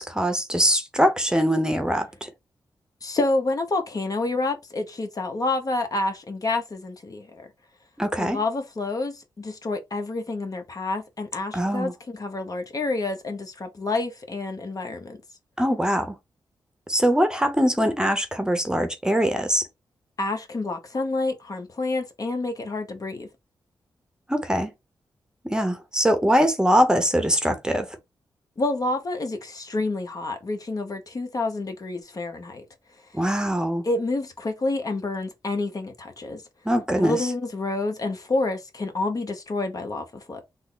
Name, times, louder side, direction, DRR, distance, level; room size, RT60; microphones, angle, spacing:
voice 1, 0.0-2.3 8.0-8.4 11.5-11.9 15.6-16.1 16.9-19.6 24.3-24.7 25.4-27.9 33.1-33.8 36.7-37.2, equal, 10° right, 0.8 m, -22 dB
voice 2, 3.0-7.5 8.2-15.2 20.2-23.3 28.6-32.6 33.8-36.4 37.0-40.4, left 2 dB, 45° left, 0.9 m, -28 dB
3.6 x 2.0 x 3.8 m
cardioid pair, 65°, 8 cm